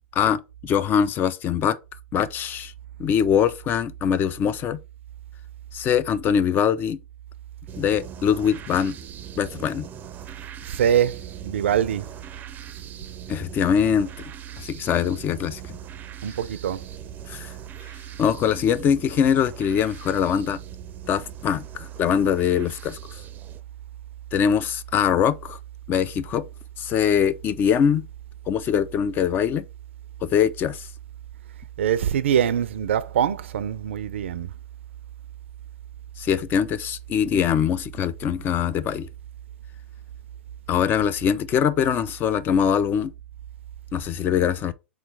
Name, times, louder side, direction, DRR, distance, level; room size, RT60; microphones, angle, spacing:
voice 1, 0.1-1.8 2.1-2.7 3.0-4.8 5.7-7.0 7.8-9.0 9.4-9.9 13.3-14.2 14.6-15.8 17.3-17.5 18.2-20.6 21.1-23.0 24.3-25.6 25.9-26.5 26.8-28.1 28.5-29.7 30.2-30.9 36.2-39.1 40.7-43.1 43.9-44.7, left 8 dB, 30° left, 0.4 m, -23 dB
sound 1, 7.7-23.6, right 8 dB, 25° right, 0.5 m, -43 dB
voice 2, 10.7-12.1 16.2-16.8 31.8-34.5, right 9 dB, 75° right, 0.5 m, -23 dB
3.6 x 3.1 x 4.7 m
hypercardioid pair, 110°, 7 cm